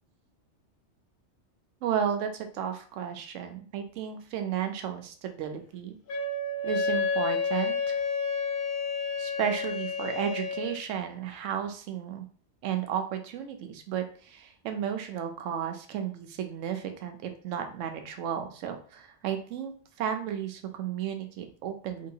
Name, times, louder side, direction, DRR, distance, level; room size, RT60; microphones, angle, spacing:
voice 1, 1.8-6.0 6.6-8.0 9.2-12.2 12.6-19.7 20.0-22.1, right 8 dB, 80° right, 6 dB, 0.9 m, -33 dB
Wind instrument woodwind instrument, 6.1-10.7, left 4 dB, 70° left, 0.9 m, -30 dB
3.0 x 2.8 x 2.7 m, 0.42 s
omnidirectional pair, 1.3 m